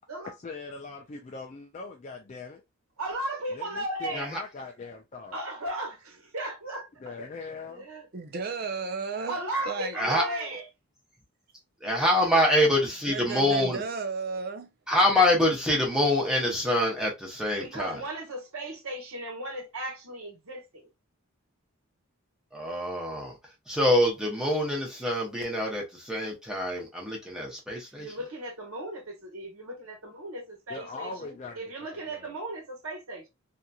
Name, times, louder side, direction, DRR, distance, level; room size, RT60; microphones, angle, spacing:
voice 1, 0.4-2.6 3.5-5.4 7.0-7.9 30.7-31.6 31.9-32.4, left 4 dB, 30° left, 0.3 m, -41 dB
voice 2, 3.0-4.3 5.3-6.0 6.3-7.1 7.7-8.1 8.7-8.8 9.3-10.6 12.3-12.4 17.6-20.9 28.0-33.3, right 1 dB, 75° right, 1.1 m, -36 dB
voice 3, 8.1-9.4 9.7-10.6 13.1-14.7, right 5 dB, 45° right, 0.5 m, -34 dB
voice 4, 9.9-10.3 11.8-13.9 14.9-18.0 22.5-28.1, left 1 dB, 5° right, 0.8 m, -25 dB
2.8 x 2.6 x 2.3 m
head